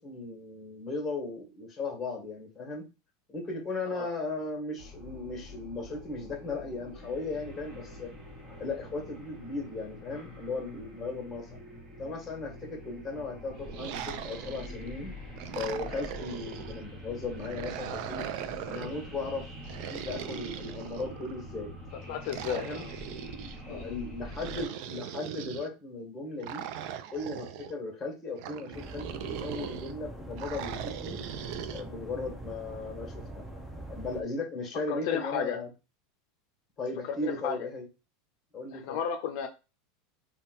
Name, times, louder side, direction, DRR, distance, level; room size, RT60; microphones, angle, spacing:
voice 1, 0.0-2.9 3.3-8.1 8.6-11.5 12.0-15.2 15.5-18.3 18.7-19.5 19.9-21.7 22.5-22.9 23.7-26.6 27.1-31.2 31.7-33.4 33.9-35.7 36.8-37.9 38.5-39.0, left 3 dB, 15° left, 1 dB, 1.5 m, -37 dB
sound 1, 4.8-24.7, left 1 dB, 30° right, 1.5 m, -45 dB
sound 2, 13.7-14.9 15.4-16.8 17.4-19.0 19.6-21.3 22.2-23.6 24.3-25.7 26.4-27.7 28.4-29.9 30.4-31.8, right 9 dB, 55° right, 0.4 m, -39 dB
voice 2, 22.1-22.9 23.7-24.0 34.9-35.6 37.2-37.6 38.7-39.5, left 8 dB, 60° left, 5 dB, 0.5 m, -33 dB
sound 3, 28.7-34.2, right 1 dB, 5° right, 0.7 m, -43 dB
3.7 x 2.3 x 4.1 m, 0.29 s
supercardioid pair, 145°, 0 cm